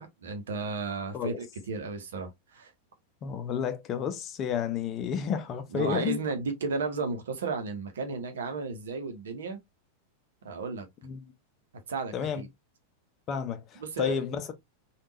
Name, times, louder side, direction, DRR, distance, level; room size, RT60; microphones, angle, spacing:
voice 1, 0.0-2.7 5.7-9.6 10.4-10.8 11.9-12.5 13.8-14.2, right 4 dB, 65° right, 0.9 m, -34 dB
voice 2, 3.2-6.2 11.0-11.3 12.1-12.4 13.3-14.5, left 7 dB, 30° left, 0.6 m, -31 dB
3.5 x 2.4 x 2.7 m
figure-of-eight pair, 90°, 0 cm